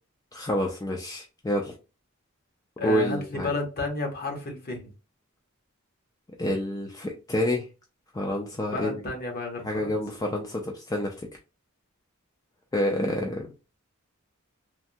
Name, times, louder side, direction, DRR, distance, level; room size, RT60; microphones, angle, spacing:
voice 1, 0.3-1.7 2.8-3.5 6.4-7.7 8.1-9.0 9.6-11.1 12.7-13.5, left 1 dB, 15° left, 0.3 m, -28 dB
voice 2, 2.8-4.9 8.7-9.9, left 3 dB, 45° left, 0.9 m, -32 dB
3.3 x 2.1 x 2.6 m
head